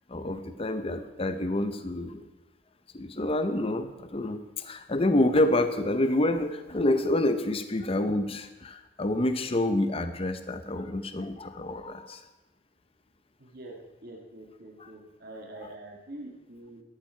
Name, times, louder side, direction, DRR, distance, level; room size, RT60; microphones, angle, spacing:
voice 1, 0.1-2.3 2.9-12.2 14.8-14.9 15.6-15.7, left 1 dB, 30° left, 9 dB, 0.7 m, -28 dB
voice 2, 13.4-16.8, right 1 dB, 55° right, 0 dB, 2.0 m, -45 dB
13.5 x 12.0 x 4.5 m, 1.0 s
head